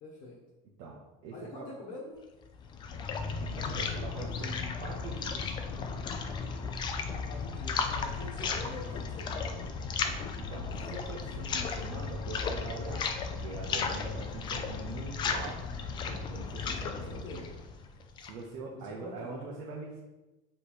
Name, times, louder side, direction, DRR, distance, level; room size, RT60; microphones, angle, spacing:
voice 1, 0.0-0.4 1.3-2.2 7.3-9.8 16.6-17.5 18.7-19.3, left 3 dB, 45° left, -3 dB, 1.2 m, -46 dB
voice 2, 1.2-1.7 3.4-5.5 7.9-8.9 10.3-13.1 13.4-15.6 16.0-17.4 18.2-20.0, right 3 dB, 65° right, -4 dB, 1.2 m, -43 dB
sound 1, 2.4-18.5, left 5 dB, 25° left, 0.5 m, -35 dB
7.3 x 3.4 x 4.4 m, 1.1 s
cardioid pair, 170°, 17 cm